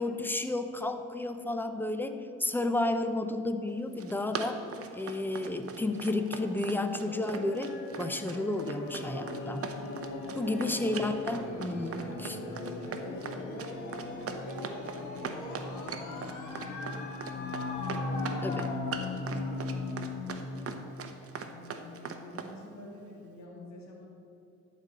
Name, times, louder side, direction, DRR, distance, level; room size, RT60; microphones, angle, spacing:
voice 1, 0.0-4.6 4.9-7.7 8.0-9.7 10.3-12.4 18.4-18.7, left 2 dB, 5° left, 8 dB, 0.7 m, -32 dB
Run, 3.8-22.5, right 6 dB, 50° right, 0.9 m, -40 dB
sound 1, 7.0-20.6, left 3 dB, 85° left, 1.6 m, -38 dB
voice 2, 10.1-10.8 11.9-20.8 21.4-24.1, left 2 dB, 65° left, -2 dB, 2.3 m, -48 dB
12.5 x 4.3 x 7.4 m, 2.8 s
cardioid pair, 90°, 30 cm